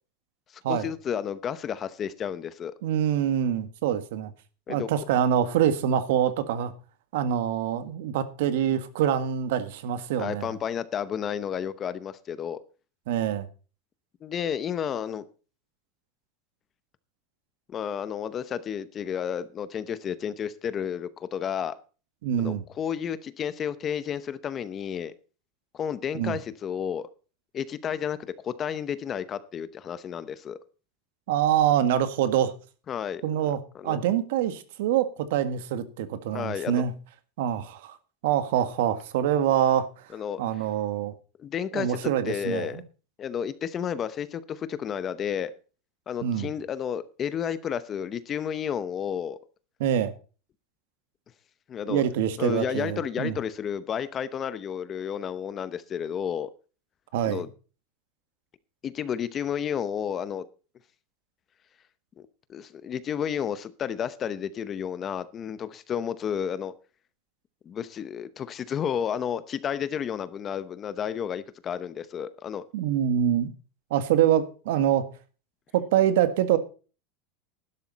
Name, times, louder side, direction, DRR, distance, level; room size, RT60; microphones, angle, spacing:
voice 1, 0.7-2.7 4.7-4.9 10.2-12.6 14.2-15.2 17.7-21.8 22.4-25.1 25.7-27.1 27.5-28.2 28.4-30.6 32.9-34.0 36.3-36.8 40.1-40.4 41.4-42.0 42.3-42.8 43.2-45.5 46.1-49.4 51.7-52.0 52.4-56.5 57.2-57.5 58.8-60.4 62.2-66.7 67.7-72.6, left 8 dB, 25° left, 0.8 m, -31 dB
voice 2, 2.8-4.3 4.7-6.7 7.1-10.5 13.1-13.5 22.2-22.6 26.1-26.4 31.3-32.5 33.2-36.9 37.4-38.0 38.2-39.9 40.4-41.1 41.7-42.8 46.2-46.5 49.8-50.1 51.9-53.3 57.1-57.4 72.7-73.5 73.9-75.1 75.7-76.6, right 10 dB, 70° right, 1.7 m, -25 dB
12.0 x 11.5 x 4.1 m
supercardioid pair, 165°, 0 cm